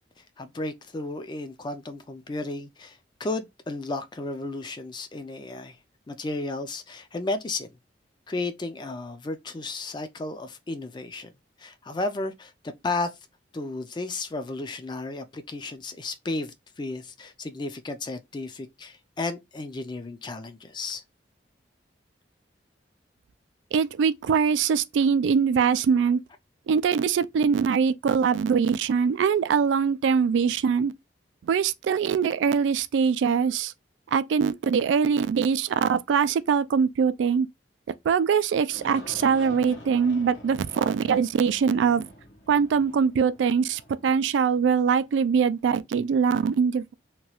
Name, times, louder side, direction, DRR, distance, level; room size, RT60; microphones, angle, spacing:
voice 1, 0.4-5.8 6.1-7.7 8.3-11.3 11.6-13.2 13.5-21.0, left 2 dB, 25° left, 0.4 m, -33 dB
voice 2, 23.7-26.2 26.7-30.9 31.4-33.7 34.1-37.5 38.0-42.1 42.5-46.9, right 6 dB, 85° right, 0.3 m, -23 dB
Aircraft, 38.7-45.4, left 1 dB, 75° left, 0.9 m, -46 dB
2.9 x 2.3 x 2.9 m
head